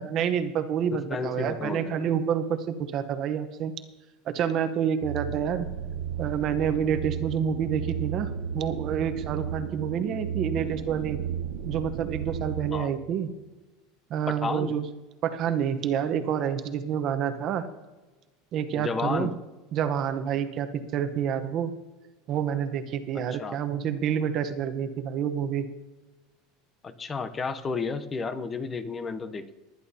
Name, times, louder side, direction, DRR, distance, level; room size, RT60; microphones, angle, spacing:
voice 1, 0.0-3.7 4.3-5.7 6.2-11.2 11.7-13.3 14.1-14.8 15.2-17.7 18.5-19.3 19.7-21.7 22.3-25.7, right 8 dB, 40° right, 10 dB, 0.9 m, -28 dB
voice 2, 1.1-2.1 12.7-12.9 14.3-14.7 18.7-19.3 23.1-23.6 26.8-29.5, left 4 dB, 20° left, 10 dB, 0.7 m, -32 dB
sound 1, 5.0-12.7, right 9 dB, 75° right, 0.7 m, -34 dB
19.5 x 11.0 x 2.8 m, 1.2 s
supercardioid pair, 145°, 0 cm